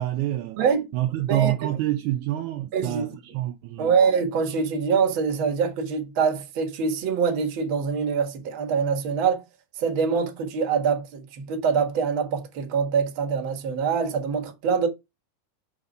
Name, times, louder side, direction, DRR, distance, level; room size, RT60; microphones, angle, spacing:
voice 1, 0.0-0.6 0.9-4.0, right 14 dB, 80° right, 1.8 m, -27 dB
voice 2, 0.6-0.9 1.3-1.7 2.7-3.0 3.8-9.4 9.8-14.9, right 6 dB, 50° right, 1.6 m, -24 dB
6.6 x 3.7 x 5.1 m
omnidirectional pair, 3.8 m